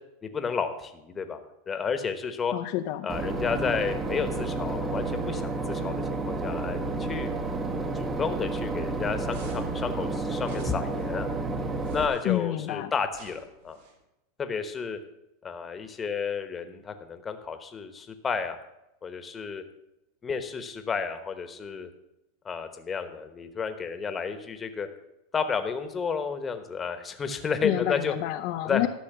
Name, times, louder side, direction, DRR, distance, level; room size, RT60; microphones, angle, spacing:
voice 1, 0.2-2.5 3.0-7.3 7.9-11.3 11.9-13.8 14.4-15.0 15.4-18.6 19.0-19.6 20.2-21.9 22.4-24.9 25.3-28.1 28.6-28.9, left 5 dB, 20° left, 8 dB, 1.1 m, -31 dB
voice 2, 2.5-3.1 12.2-12.9 27.6-28.9, left 15 dB, 55° left, 7 dB, 0.5 m, -28 dB
Boat Water vehicle / Engine, 3.1-12.1, right 3 dB, 20° right, 0.9 m, -31 dB
sound 1, 9.3-9.8 10.4-11.1 11.8-12.4 13.1-13.9, right 2 dB, 80° right, 2.7 m, -47 dB
12.5 x 5.6 x 6.8 m, 0.89 s
supercardioid pair, 140°, 0 cm